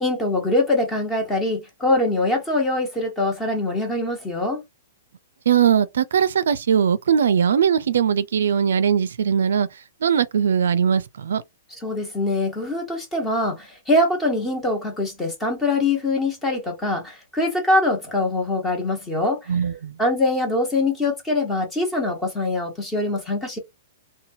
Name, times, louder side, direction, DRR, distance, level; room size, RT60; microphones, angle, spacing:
voice 1, 0.0-4.6 11.8-19.5 20.0-23.6, left 2 dB, 10° left, 1.1 m, -23 dB
voice 2, 5.5-9.7 10.0-11.4 19.5-20.0, right 7 dB, 80° right, 0.4 m, -20 dB
2.9 x 2.2 x 2.7 m
hypercardioid pair, 150°, 0 cm